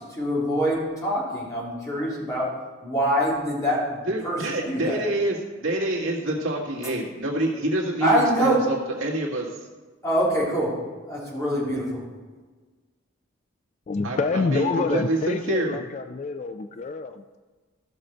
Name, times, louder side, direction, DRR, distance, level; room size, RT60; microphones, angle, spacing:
voice 1, 0.1-2.5 2.8-5.0 8.0-8.6 10.0-10.7 11.1-12.0, equal, 15° left, -6 dB, 3.4 m, -24 dB
voice 2, 4.1-9.7 14.0-15.8, right 1 dB, 75° right, -1 dB, 2.0 m, -27 dB
voice 3, 13.9-17.4, left 4 dB, 35° left, 9 dB, 0.3 m, -27 dB
14.0 x 6.4 x 4.4 m, 1.3 s
head